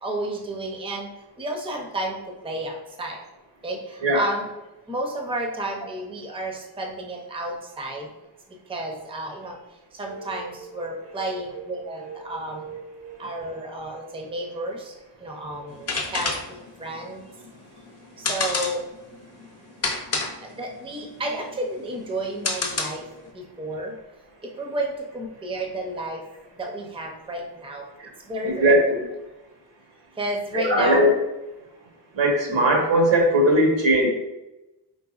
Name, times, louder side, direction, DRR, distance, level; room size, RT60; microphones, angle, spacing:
voice 1, 0.0-1.1 1.4-2.2 2.4-3.2 3.6-4.5 4.9-8.1 8.7-9.6 9.9-12.7 13.2-17.3 18.2-18.8 20.4-23.1 23.3-23.9 24.4-26.2 26.5-27.9 28.2-28.7 30.2-31.2, right 1 dB, 15° right, 1 dB, 0.5 m, -31 dB
voice 2, 10.1-10.7 11.0-11.6 12.0-13.4 15.2-15.7 28.0-28.1 28.4-29.0 30.5-31.1 32.1-34.1, right 1 dB, 90° right, 0 dB, 1.3 m, -22 dB
sound 1, 15.7-23.3, left 3 dB, 35° left, 0.6 m, -30 dB
4.5 x 3.8 x 2.4 m, 0.99 s
wide cardioid pair, 175°, 43 cm